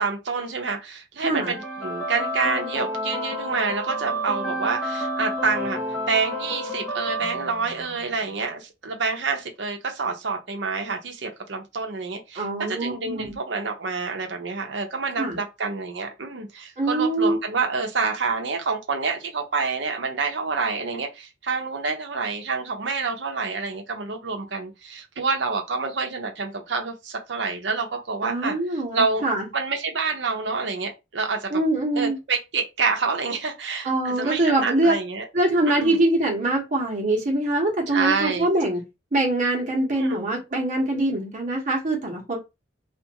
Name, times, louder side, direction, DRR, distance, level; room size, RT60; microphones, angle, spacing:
voice 1, 0.0-5.8 6.1-28.5 28.9-29.2 29.5-31.6 32.0-35.3 35.7-36.0 37.9-38.5 39.9-40.3, right 4 dB, 70° right, 0.8 m, -27 dB
sound 1, 1.2-8.2, equal, 10° left, 0.8 m, -30 dB
voice 2, 1.2-1.6 12.3-13.4 15.2-15.4 16.8-17.4 28.2-29.5 31.5-32.2 33.8-35.0 35.3-38.8 39.1-42.4, right 2 dB, 40° right, 1.0 m, -23 dB
2.5 x 2.5 x 2.9 m
head